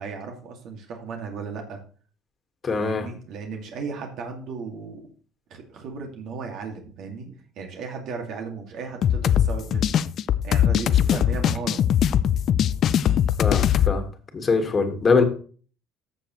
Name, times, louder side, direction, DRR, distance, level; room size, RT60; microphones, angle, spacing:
voice 1, 0.0-1.8 2.8-5.1 5.5-9.9 10.4-11.8, right 5 dB, 60° right, 2 dB, 2.2 m, -35 dB
voice 2, 2.6-3.0 13.4-14.1 14.3-15.2, left 4 dB, 30° left, 6 dB, 1.8 m, -22 dB
sound 1, 9.0-13.9, left 10 dB, 50° left, 0.4 m, -21 dB
13.5 x 6.9 x 3.1 m, 0.41 s
cardioid pair, 125°, 0 cm